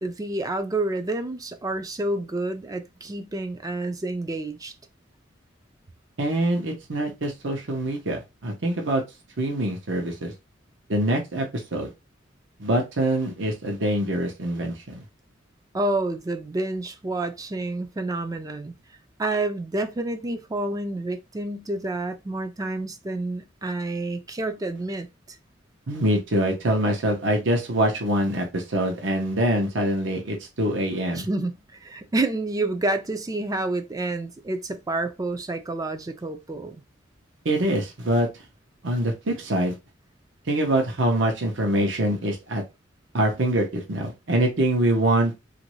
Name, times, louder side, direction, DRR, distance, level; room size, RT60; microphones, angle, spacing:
voice 1, 0.0-4.7 15.7-18.7 19.2-25.1 31.2-36.8, right 2 dB, 20° right, 0.4 m, -29 dB
voice 2, 6.2-9.0 9.4-10.3 10.9-11.9 12.6-15.0 25.9-31.3 37.4-38.3 38.8-39.8 40.5-42.6 43.1-45.3, right 1 dB, 75° right, 0.8 m, -24 dB
3.0 x 2.6 x 3.0 m
head